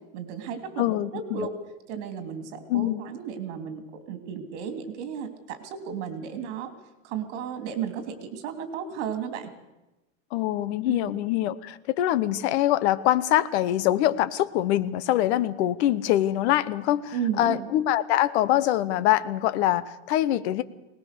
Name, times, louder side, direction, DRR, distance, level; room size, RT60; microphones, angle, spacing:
voice 1, 0.1-0.8 1.1-1.5 1.9-6.7 7.0-9.5 10.8-11.1 17.1-17.7, right 7 dB, 70° right, 8 dB, 3.1 m, -34 dB
voice 2, 0.8-1.4 2.7-3.0 10.3-20.6, left 13 dB, 70° left, 15 dB, 1.1 m, -24 dB
21.5 x 19.5 x 6.8 m, 1.0 s
supercardioid pair, 175°, 35 cm